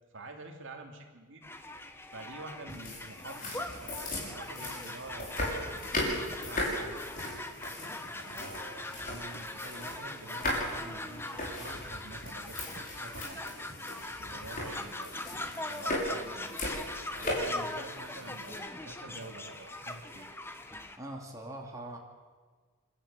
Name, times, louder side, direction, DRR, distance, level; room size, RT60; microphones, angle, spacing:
voice 1, 0.1-1.4 2.1-7.1 8.2-13.7 14.2-15.2 15.6-16.5 17.1-20.3, right 2 dB, 55° right, 3 dB, 3.0 m, -47 dB
sound 1, 1.4-21.0, left 2 dB, 10° left, 1.2 m, -41 dB
sound 2, 2.7-18.5, left 1 dB, 40° left, 6.1 m, -38 dB
voice 2, 21.0-22.0, right 1 dB, 15° right, -1 dB, 2.4 m, -42 dB
29.0 x 12.5 x 8.8 m, 1.5 s
head